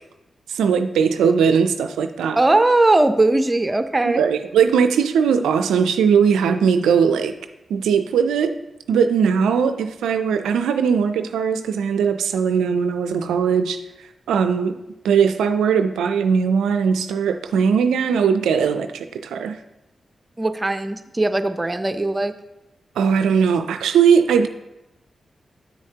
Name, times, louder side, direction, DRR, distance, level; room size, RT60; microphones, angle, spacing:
voice 1, 0.5-2.4 4.1-7.3 7.7-8.6 8.9-14.7 15.0-19.6 23.0-24.5, right 6 dB, 90° right, 8 dB, 0.3 m, -19 dB
voice 2, 2.4-4.2 20.4-22.3, right 2 dB, 25° right, 9 dB, 0.6 m, -19 dB
8.2 x 6.4 x 2.8 m, 0.91 s
supercardioid pair, 40°, 0 cm